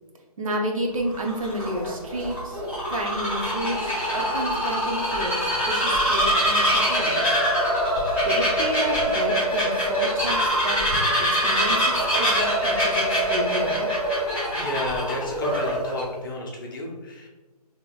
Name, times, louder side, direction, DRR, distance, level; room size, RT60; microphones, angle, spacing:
voice 1, 0.4-2.6 2.9-7.3 8.2-10.8 11.2-13.9, equal, 55° right, 1 dB, 0.7 m, -31 dB
Bird vocalization bird call bird song, 1.0-16.0, equal, 5° right, 1.1 m, -24 dB
voice 2, 14.5-17.3, left 1 dB, 35° left, -2 dB, 0.6 m, -31 dB
3.9 x 2.9 x 2.3 m, 1.2 s
hypercardioid pair, 160°, 21 cm